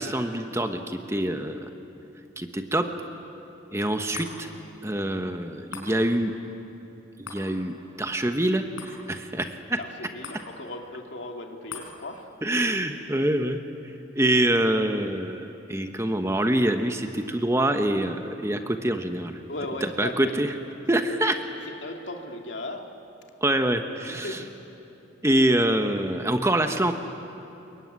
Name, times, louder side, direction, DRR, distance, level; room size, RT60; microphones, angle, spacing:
voice 1, 0.0-1.6 2.4-2.9 3.7-4.5 4.8-6.3 7.2-9.8 12.4-13.6 14.1-19.4 19.8-20.5 20.9-21.3 23.4-24.4 25.2-26.9, right 1 dB, 15° right, 6 dB, 1.1 m, -25 dB
sound 1, 4.1-16.7 17.2-17.3, left 4 dB, 85° left, 5.4 m, -48 dB
voice 2, 9.8-12.3 19.5-20.4 21.1-21.2 21.8-22.9 24.1-24.6, left 1 dB, 70° left, 3 dB, 2.6 m, -37 dB
26.5 x 22.5 x 9.7 m, 2.9 s
head